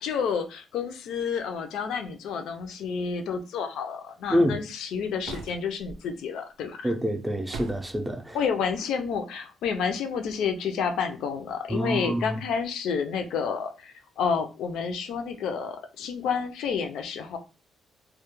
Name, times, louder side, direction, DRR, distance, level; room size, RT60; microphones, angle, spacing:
voice 1, 0.0-6.9 8.3-17.4, left 6 dB, 85° left, 0.4 m, -30 dB
voice 2, 4.3-4.6 6.8-8.4 11.7-12.4, equal, 10° right, 0.3 m, -26 dB
sound 1, 5.3-6.0 7.5-8.0, right 4 dB, 80° right, 0.4 m, -39 dB
2.2 x 2.1 x 2.9 m
cardioid pair, 140°, 0 cm